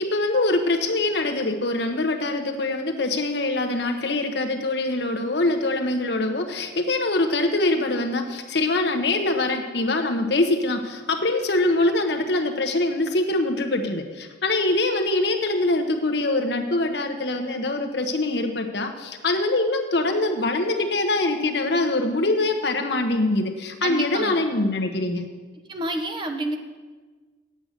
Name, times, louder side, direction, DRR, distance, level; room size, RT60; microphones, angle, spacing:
voice 1, 0.0-25.3, left 2 dB, 60° left, 5 dB, 1.0 m, -24 dB
voice 2, 23.8-24.4 25.7-26.6, right 2 dB, 25° right, 4 dB, 0.9 m, -29 dB
9.2 x 7.9 x 6.6 m, 1.4 s
head